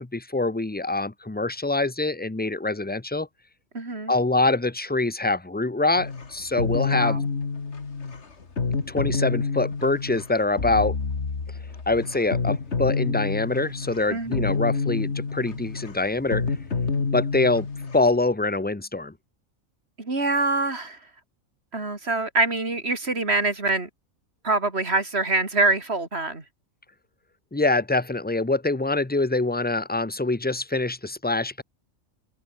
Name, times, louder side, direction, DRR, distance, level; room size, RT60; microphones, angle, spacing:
voice 1, 0.0-3.3 4.1-7.2 8.9-10.9 11.9-16.4 17.1-17.7 17.9-19.1 27.5-31.6, left 2 dB, 10° left, 0.7 m, -24 dB
voice 2, 3.7-4.1 6.9-7.3 14.1-14.5 20.0-21.0 21.7-23.9 24.4-26.4, right 3 dB, 50° right, 3.9 m, -25 dB
sound 1, 6.0-18.2, left 4 dB, 55° left, 2.3 m, -28 dB
omnidirectional pair, 1.4 m